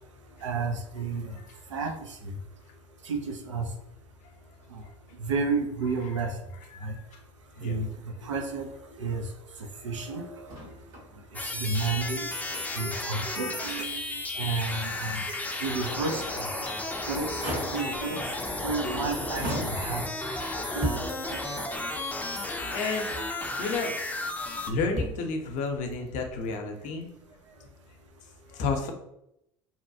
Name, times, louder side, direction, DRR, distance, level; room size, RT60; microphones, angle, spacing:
voice 1, 0.4-1.3 1.7-1.9 3.1-3.6 4.7-4.8 5.3-6.3 6.8-6.9 7.6-7.9 8.2-8.7 9.0-9.2 9.8-10.5 11.6-12.3 12.7-14.0 14.4-15.2 15.6-16.7 17.1-17.3 17.7-18.2 18.6-20.0 20.7-21.4, right 4 dB, 90° right, 3 dB, 0.5 m, -31 dB
Motor vehicle (road), 10.5-11.1 11.4-11.5 12.0-13.0 13.4-13.5 14.1-14.2 16.4-16.9 17.4-18.1 18.9-19.0 19.4-20.2 21.3-21.4, equal, 70° right, 1.3 m, -37 dB
sound 1, 11.3-24.7, left 2 dB, 10° left, 0.5 m, -33 dB
sound 2, 17.6-20.3 20.8-21.4 22.1-22.2 22.5-22.6 24.3-26.6, equal, 45° right, 0.9 m, -38 dB
voice 2, 19.9-20.9 22.7-23.1 23.6-23.9 24.7-27.1 28.5-28.9, left 4 dB, 55° left, 4 dB, 0.6 m, -32 dB
2.7 x 2.2 x 2.6 m, 0.81 s
hypercardioid pair, 70°, 15 cm